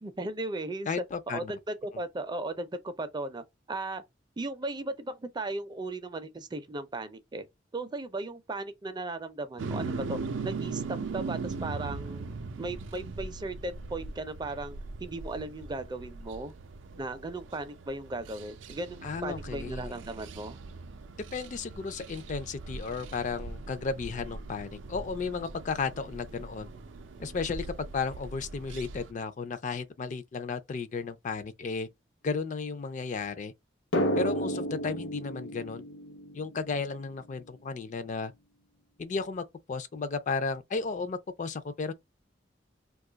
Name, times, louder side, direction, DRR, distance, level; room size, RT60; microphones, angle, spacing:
voice 1, 0.0-0.9 1.3-4.0 4.4-7.4 7.7-10.2 10.4-12.3 12.6-16.5 17.0-20.6, right 2 dB, 25° right, 0.4 m, -36 dB
voice 2, 0.9-1.5 19.0-19.9 21.3-26.7 27.2-27.7 27.9-31.9 32.2-33.5 34.2-35.8 36.3-38.3 39.0-41.9, left 4 dB, 45° left, 0.4 m, -34 dB
sound 1, 9.6-29.1, right 3 dB, 90° right, 0.4 m, -40 dB
Drum, 33.9-37.3, equal, 90° left, 0.6 m, -32 dB
2.7 x 2.3 x 3.8 m
head